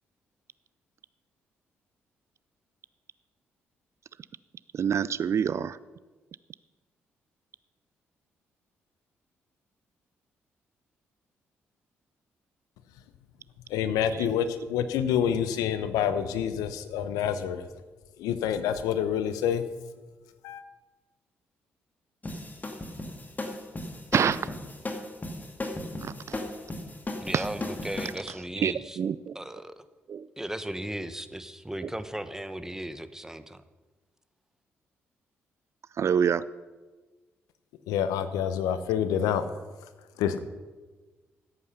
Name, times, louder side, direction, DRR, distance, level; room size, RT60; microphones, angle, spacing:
voice 1, 4.7-5.8 14.2-14.3 24.1-24.6 26.0-26.4 27.3-27.4 28.6-29.3 30.1-30.3 36.0-36.4, right 7 dB, 50° right, 17 dB, 0.4 m, -26 dB
voice 2, 13.7-17.7 18.2-19.6 20.4-20.6 37.9-39.4 40.2-40.4, left 9 dB, 75° left, 12 dB, 0.8 m, -27 dB
sound 1, 22.2-28.1, left 2 dB, 25° left, 2.2 m, -36 dB
voice 3, 27.2-29.0 29.3-29.8 30.4-33.6, right 1 dB, 10° right, 11 dB, 1.0 m, -36 dB
14.5 x 8.4 x 5.7 m, 1.3 s
hypercardioid pair, 40°, 6 cm